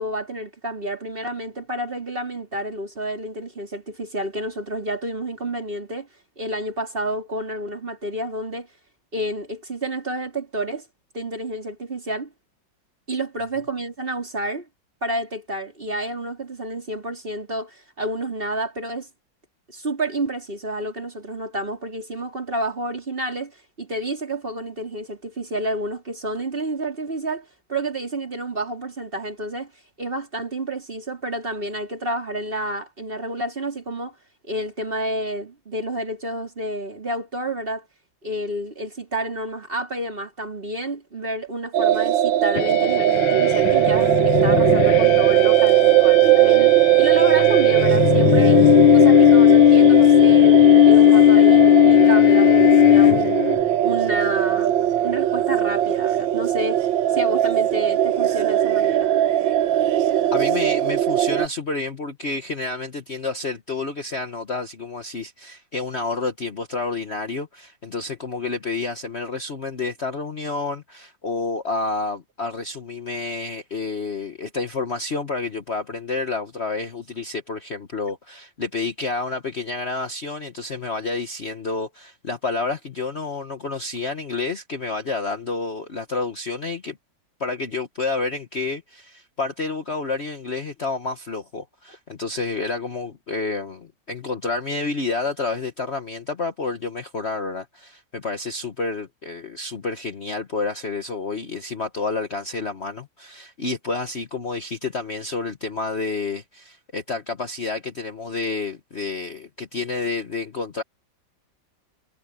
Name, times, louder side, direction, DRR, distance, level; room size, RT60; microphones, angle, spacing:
voice 1, 0.0-6.1 6.4-8.7 9.1-10.9 11.1-12.3 13.1-14.7 15.0-19.1 19.7-29.7 30.0-34.2 34.4-37.9 38.2-48.6 48.9-53.4 53.8-54.8 55.0-59.1, right 1 dB, 30° right, 3.7 m, -29 dB
sound 1, 41.7-61.5, right 13 dB, 85° right, 1.5 m, -19 dB
sound 2, 42.6-53.6, left 13 dB, 85° left, 1.4 m, -16 dB
voice 2, 60.3-87.0 87.4-110.8, left 3 dB, 40° left, 1.3 m, -29 dB
omnidirectional pair, 2.0 m